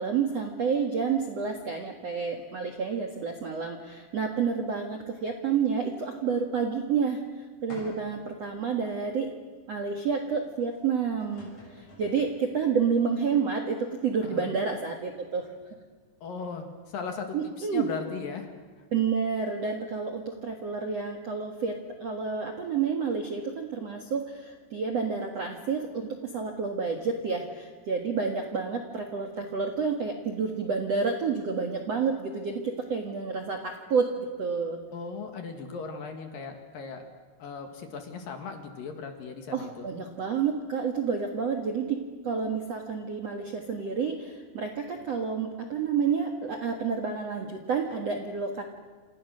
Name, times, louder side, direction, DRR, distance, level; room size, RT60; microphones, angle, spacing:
voice 1, 0.0-9.3 9.7-15.5 17.3-17.8 18.9-34.8 39.5-48.6, right 5 dB, 55° right, 3 dB, 1.8 m, -29 dB
sound 1, 7.7-8.3 8.9-9.0 10.8-10.9 11.2-12.4, left 1 dB, 35° left, 7.8 m, -47 dB
voice 2, 14.2-14.5 16.2-18.5 34.9-37.1 37.4-39.8, left 5 dB, 55° left, 5 dB, 3.2 m, -38 dB
28.0 x 28.0 x 6.5 m, 1.5 s
omnidirectional pair, 5.4 m